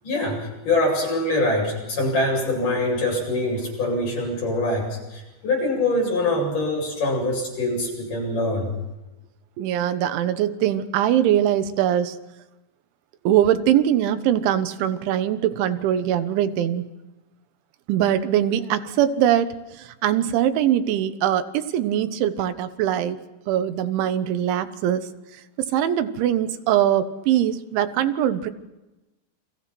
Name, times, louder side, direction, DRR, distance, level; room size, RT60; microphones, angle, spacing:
voice 1, 0.0-8.7, left 2 dB, 45° left, -1 dB, 9.6 m, -24 dB
voice 2, 9.6-12.2 13.3-16.9 17.9-23.2 23.5-25.1 25.6-28.5, right 11 dB, 90° right, 10 dB, 3.6 m, -22 dB
30.0 x 24.5 x 6.1 m, 1.0 s
omnidirectional pair, 5.2 m